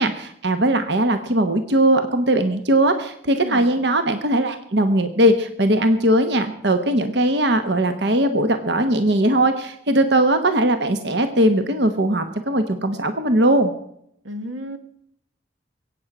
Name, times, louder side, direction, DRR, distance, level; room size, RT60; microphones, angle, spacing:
voice 1, 0.0-13.7, right 1 dB, 65° right, 8 dB, 1.2 m, -19 dB
voice 2, 3.4-3.7 14.2-14.8, equal, 90° right, 9 dB, 1.5 m, -32 dB
22.0 x 9.0 x 6.1 m, 0.72 s
head